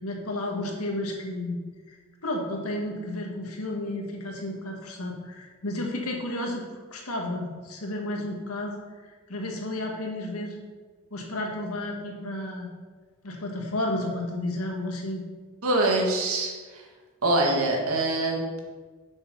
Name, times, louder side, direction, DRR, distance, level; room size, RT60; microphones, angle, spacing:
voice 1, 0.0-1.6 2.2-6.6 6.9-8.8 9.3-10.6 11.1-12.7 13.2-15.2, left 1 dB, 85° left, 1 dB, 1.8 m, -32 dB
voice 2, 15.6-16.8 17.2-18.6, right 2 dB, 80° right, 0 dB, 1.9 m, -24 dB
7.2 x 6.7 x 5.6 m, 1.4 s
head